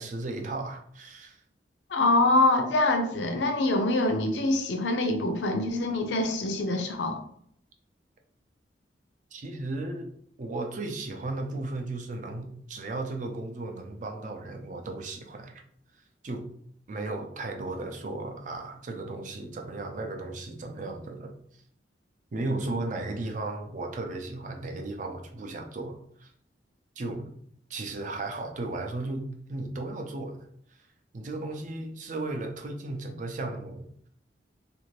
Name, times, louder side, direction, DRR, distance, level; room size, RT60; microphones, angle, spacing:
voice 1, 0.0-1.4 9.3-15.6 16.2-16.5 16.9-21.4 22.3-26.3 27.0-27.3 27.7-30.5 31.1-33.9, right 2 dB, 45° right, 0.5 m, -35 dB
voice 2, 1.9-7.2, left 2 dB, 80° left, 0.5 m, -25 dB
2.6 x 2.5 x 3.1 m
head